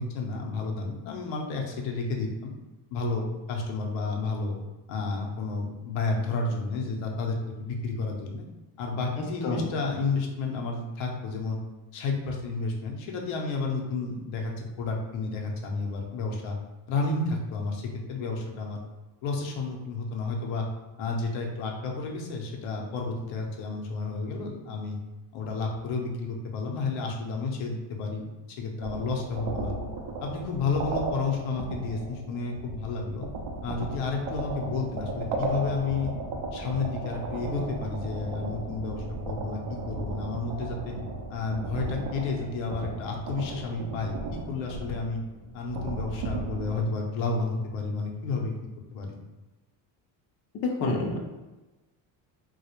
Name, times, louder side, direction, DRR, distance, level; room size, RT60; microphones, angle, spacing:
voice 1, 0.0-2.5 2.9-4.6 4.9-8.4 8.8-11.6 11.9-16.6 16.9-18.8 19.2-20.7 21.0-25.0 25.3-28.2 28.6-29.7 30.2-33.3 33.6-36.1 36.5-40.9 41.3-45.2 45.5-48.5 48.9-49.2, left 3 dB, 80° left, 1 dB, 0.7 m, -31 dB
voice 2, 9.2-9.7 50.6-51.2, left 3 dB, 35° left, 0 dB, 0.4 m, -28 dB
sound 1, 28.8-46.8, right 2 dB, 60° right, 0.5 m, -35 dB
2.2 x 2.0 x 2.8 m, 1.1 s
cardioid pair, 105°, 47 cm